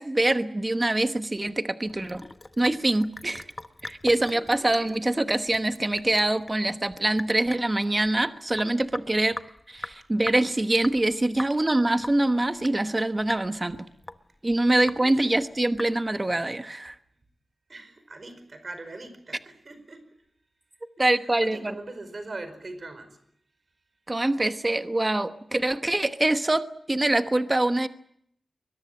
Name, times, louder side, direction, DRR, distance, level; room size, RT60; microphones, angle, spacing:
voice 1, 0.0-2.2 2.6-3.4 3.8-9.4 9.7-13.9 14.4-17.0 21.0-21.7 24.1-27.9, right 1 dB, 25° right, 9 dB, 1.1 m, -24 dB
Sink (filling or washing) / Drip, 1.9-16.3, left 2 dB, 25° left, 1.0 m, -42 dB
voice 2, 3.2-3.5 4.1-4.8 15.0-15.4 17.7-20.0 21.0-23.2, right 2 dB, 50° right, 10 dB, 4.9 m, -42 dB
23.5 x 22.0 x 7.8 m, 0.72 s
wide cardioid pair, 95°, 0 cm